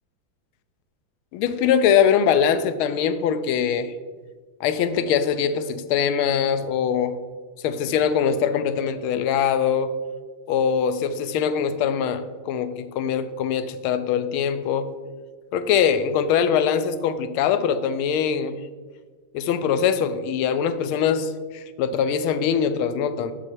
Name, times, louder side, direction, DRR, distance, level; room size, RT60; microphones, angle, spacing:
voice 1, 1.3-3.9 4.6-7.2 7.6-9.9 10.5-14.9 15.5-18.7 19.3-23.3, left 7 dB, 85° left, 11 dB, 1.4 m, -22 dB
6.7 x 6.6 x 4.5 m, 1.5 s
omnidirectional pair, 2.3 m